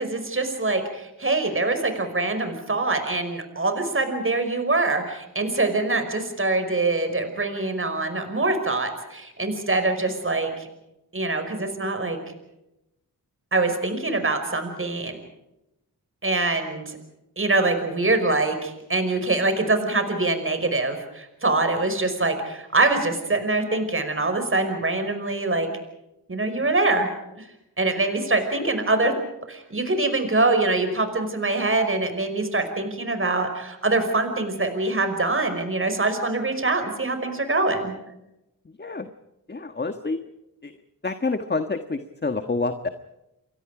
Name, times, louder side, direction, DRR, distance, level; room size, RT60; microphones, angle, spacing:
voice 1, 0.0-10.7 11.1-12.2 13.5-15.2 16.2-17.0 17.4-25.7 26.3-27.1 27.4-27.5 27.8-29.1 29.5-37.9, right 2 dB, 35° right, 7 dB, 5.5 m, -24 dB
voice 2, 39.5-40.2 40.6-40.7 41.0-42.9, left 3 dB, 30° left, 8 dB, 1.4 m, -28 dB
29.5 x 23.5 x 5.0 m, 0.90 s
wide cardioid pair, 90°, 37 cm